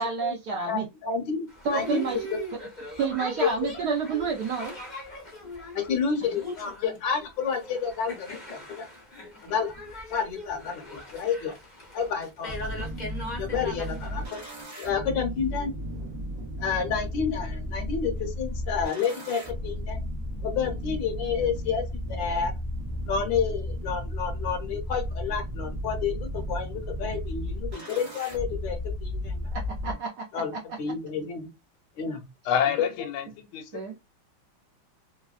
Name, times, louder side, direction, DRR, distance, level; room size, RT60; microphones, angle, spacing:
voice 1, 0.0-0.9 1.6-2.3 3.0-4.7 29.5-30.6 33.7-33.9, right 5 dB, 75° right, 0.9 m, -29 dB
voice 2, 0.7-1.5 1.7-2.0 2.3-2.4 3.4-3.5 5.7-8.9 9.4-9.7 10.1-11.5 11.9-12.9 13.4-14.4 14.8-15.7 16.6-20.0 20.4-22.5 23.0-29.5 30.3-31.5 32.0-32.2, left 6 dB, 70° left, 1.3 m, -30 dB
Boat Water vehicle, 1.5-14.6, left 1 dB, 45° left, 0.6 m, -40 dB
sound 1, 12.5-29.9, equal, 50° right, 0.5 m, -34 dB
voice 3, 32.4-33.8, left 8 dB, 90° left, 1.4 m, -28 dB
3.4 x 2.2 x 2.3 m
omnidirectional pair, 2.2 m